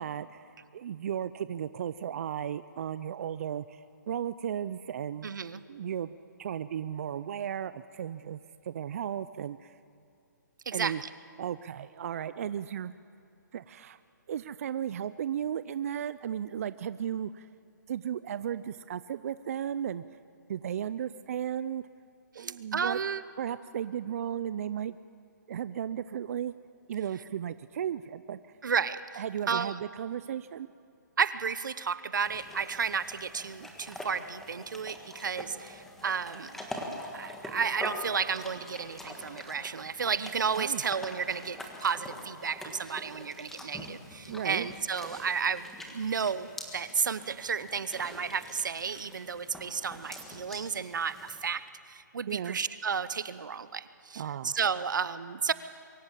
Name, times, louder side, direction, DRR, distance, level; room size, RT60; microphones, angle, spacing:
voice 1, 0.0-5.3 5.7-8.4 8.6-9.8 10.7-11.0 11.4-13.0 13.5-14.0 14.3-17.5 17.9-20.0 20.5-21.8 22.4-23.0 23.4-25.0 25.5-26.5 26.9-28.6 29.2-30.7 40.5-40.8 44.3-44.7 52.3-52.6 54.2-54.5, right 9 dB, 50° right, 14 dB, 0.4 m, -35 dB
voice 2, 5.2-5.6 10.7-11.1 22.3-23.2 28.6-29.0 29.5-29.8 31.2-36.7 37.1-55.5, right 6 dB, 75° right, 15 dB, 0.8 m, -32 dB
sound 1, 32.2-51.5, left 1 dB, 5° left, 1.6 m, -45 dB
23.5 x 15.0 x 7.5 m, 2.6 s
hypercardioid pair, 155°, 10 cm